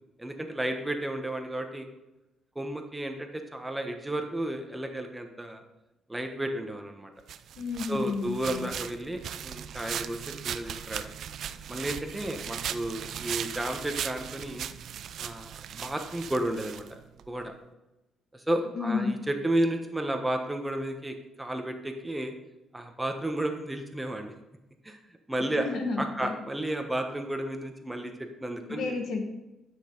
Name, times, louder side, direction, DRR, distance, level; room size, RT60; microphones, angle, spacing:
voice 1, 0.2-1.9 2.5-5.6 6.1-7.1 7.9-10.2 10.4-11.1 11.7-14.7 15.2-16.8 17.3-17.5 18.3-22.3 22.7-24.3 24.8-25.0 25.3-25.7 26.0-28.1 28.4-28.9, right 1 dB, 10° right, 4 dB, 1.3 m, -32 dB
sound 1, 7.3-17.3, right 9 dB, 70° right, 0.5 m, -38 dB
voice 2, 7.6-8.7 18.8-19.2 25.6-26.4 28.7-29.3, left 4 dB, 70° left, 4 dB, 1.7 m, -31 dB
11.5 x 6.5 x 4.0 m, 0.99 s
cardioid pair, 90°, 0 cm